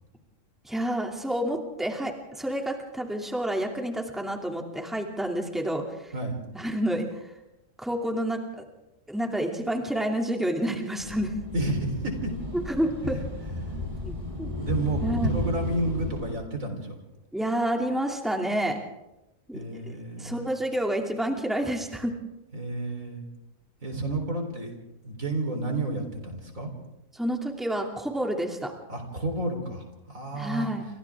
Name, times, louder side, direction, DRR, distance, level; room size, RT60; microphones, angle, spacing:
voice 1, 0.6-6.1 6.5-7.3 7.8-8.6 9.1-11.4 12.5-13.2 14.0-14.5 15.0-15.4 17.3-18.8 19.5-19.6 20.2-22.2 27.1-28.7 30.3-30.9, right 1 dB, ahead, 2 dB, 2.6 m, -29 dB
sound 1, 11.0-16.3, left 1 dB, 25° right, 6.6 m, -33 dB
voice 2, 11.5-12.3 13.6-13.7 14.6-17.0 19.5-20.5 22.5-23.2 23.8-24.7 25.0-26.7 28.9-30.7, right 2 dB, 85° right, 3 dB, 4.3 m, -31 dB
28.5 x 25.5 x 3.6 m, 0.94 s
omnidirectional pair, 1.4 m